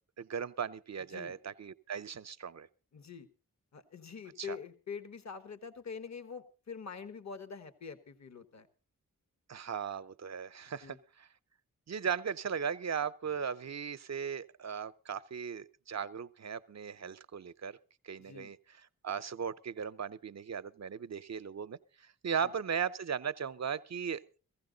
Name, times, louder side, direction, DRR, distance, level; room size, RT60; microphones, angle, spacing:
voice 1, 0.2-2.7 4.4-4.6 9.5-11.3 11.9-17.8 18.0-24.4, right 7 dB, 50° right, 0.6 m, -37 dB
voice 2, 2.9-3.3 3.7-8.7 10.8-11.0 18.2-18.5 22.4-22.5, left 6 dB, 50° left, 1.3 m, -45 dB
16.0 x 15.0 x 3.9 m
cardioid pair, 45°, 34 cm